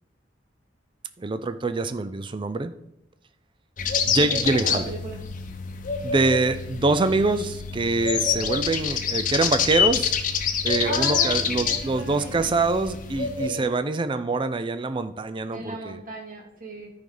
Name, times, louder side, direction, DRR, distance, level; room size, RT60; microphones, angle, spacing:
voice 1, 1.2-2.7 4.1-4.9 6.0-10.1 10.6-16.0, right 3 dB, 25° right, 12 dB, 0.4 m, -25 dB
sound 1, 3.8-13.5, left 7 dB, 45° left, 0.8 m, -27 dB
voice 2, 4.2-5.2 10.8-12.5 13.4-13.7 15.5-16.9, right 1 dB, 45° right, 0 dB, 2.2 m, -35 dB
13.0 x 5.3 x 3.9 m, 0.80 s
head